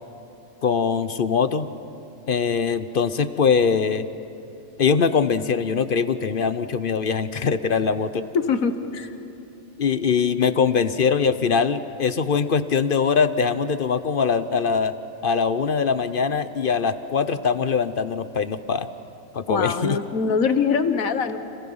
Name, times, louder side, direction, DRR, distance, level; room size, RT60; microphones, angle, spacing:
voice 1, 0.6-1.7 2.3-4.1 4.8-8.2 9.8-15.0 15.2-18.9 19.3-20.0, left 6 dB, 50° left, 12 dB, 0.8 m, -22 dB
voice 2, 8.3-9.1 19.5-21.4, left 5 dB, 85° left, 10 dB, 1.6 m, -23 dB
30.0 x 27.5 x 5.5 m, 2.8 s
omnidirectional pair, 1.4 m